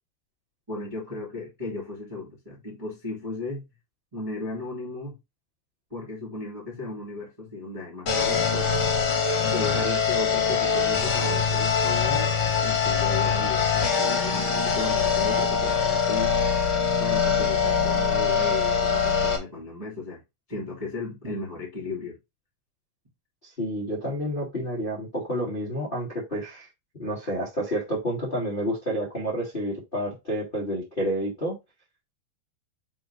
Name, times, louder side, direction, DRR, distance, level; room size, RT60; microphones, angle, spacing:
voice 1, 0.7-3.6 4.1-5.2 5.9-8.7 9.4-12.3 12.6-16.3 17.0-20.2 20.5-22.2, left 2 dB, 25° right, 0.7 m, -35 dB
sound 1, 8.1-19.4, left 6 dB, 85° left, 1.1 m, -23 dB
voice 2, 23.4-26.7 27.0-31.6, equal, 55° left, 0.5 m, -29 dB
7.0 x 4.2 x 3.3 m
omnidirectional pair, 5.2 m